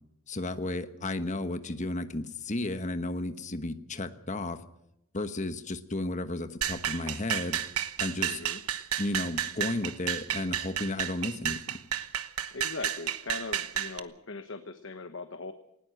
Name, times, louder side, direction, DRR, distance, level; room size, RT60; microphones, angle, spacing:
voice 1, 0.3-4.6 5.1-7.6 8.0-8.4 9.0-11.8, left 2 dB, 30° left, 9 dB, 1.2 m, -33 dB
sound 1, 6.6-14.0, right 10 dB, 85° right, 1.1 m, -32 dB
voice 2, 8.1-8.6 12.5-15.5, left 3 dB, 55° left, 7 dB, 1.1 m, -40 dB
19.5 x 18.5 x 7.8 m, 0.83 s
head